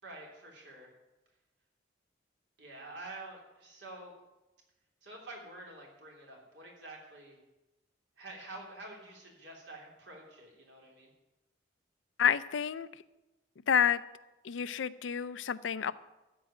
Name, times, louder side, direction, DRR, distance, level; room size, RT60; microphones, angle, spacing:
voice 1, 0.0-0.9 2.6-4.1 5.0-7.4 8.2-11.1, right 2 dB, 70° right, -2 dB, 3.2 m, -48 dB
voice 2, 12.2-12.9 13.7-14.0 14.4-15.9, left 8 dB, 85° left, 15 dB, 0.5 m, -29 dB
13.0 x 4.8 x 8.7 m, 1.0 s
head